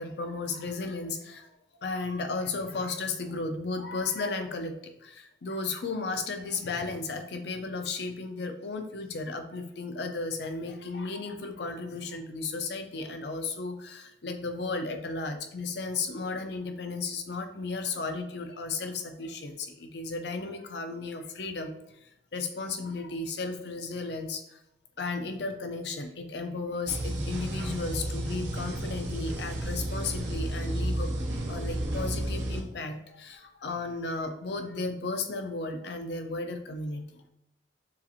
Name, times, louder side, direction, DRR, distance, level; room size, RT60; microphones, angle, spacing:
voice 1, 0.0-1.5 1.8-21.7 22.0-24.6 25.0-31.1 31.5-37.3, left 3 dB, 60° left, 6 dB, 0.5 m, -34 dB
sound 1, 26.9-32.6, right 1 dB, 75° right, 0.8 m, -32 dB
6.8 x 2.5 x 2.8 m, 0.80 s
head